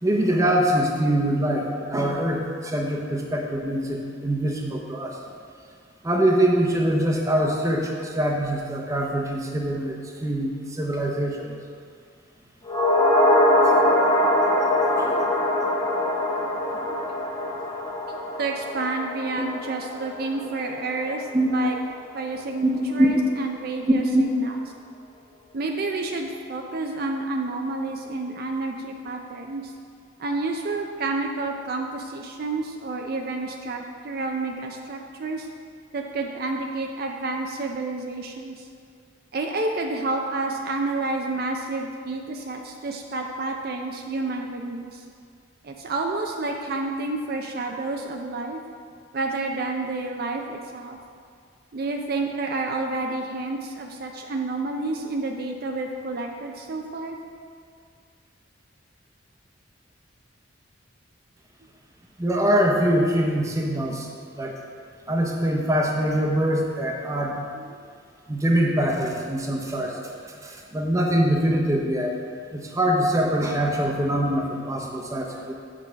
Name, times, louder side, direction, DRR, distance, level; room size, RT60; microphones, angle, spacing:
voice 1, 0.0-5.2 6.0-11.5 13.6-13.7 15.0-15.2 21.3-21.5 22.6-22.7 23.0-23.1 24.1-24.2 62.2-64.1 64.4-64.5 65.1-67.4 68.3-70.0 70.4-72.1 72.5-75.5, right 1 dB, 15° right, 0 dB, 0.8 m, -23 dB
sound 1, 12.7-21.1 21.4-21.5, left 1 dB, 20° left, 0.8 m, -23 dB
voice 2, 18.4-21.8 22.1-24.6 25.5-29.7 30.2-35.5 35.9-38.7 39.3-45.0 45.6-48.6 49.1-51.0 51.7-57.2 67.5-67.8, right 3 dB, 50° right, 2 dB, 0.5 m, -29 dB
7.4 x 4.8 x 5.7 m, 2.2 s
head